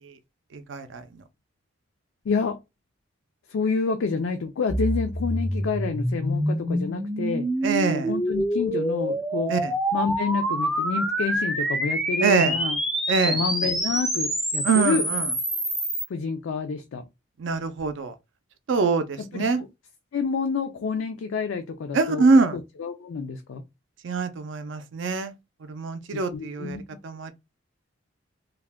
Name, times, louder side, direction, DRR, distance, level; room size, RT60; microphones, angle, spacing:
voice 1, 0.5-1.0 7.6-8.1 9.5-9.7 12.2-12.5 13.1-13.4 14.6-15.2 17.4-18.1 18.7-19.6 21.9-22.6 24.0-25.3 25.7-26.8 27.0-27.3, right 4 dB, 65° right, 0.4 m, -24 dB
voice 2, 2.3-2.6 3.5-7.5 7.9-9.5 9.9-12.8 13.3-15.1 16.1-17.0 19.2-19.7 20.1-23.6 26.3-26.8, left 5 dB, 75° left, 0.4 m, -28 dB
sound 1, 4.7-16.1, right 1 dB, ahead, 0.3 m, -26 dB
2.3 x 2.1 x 3.3 m
head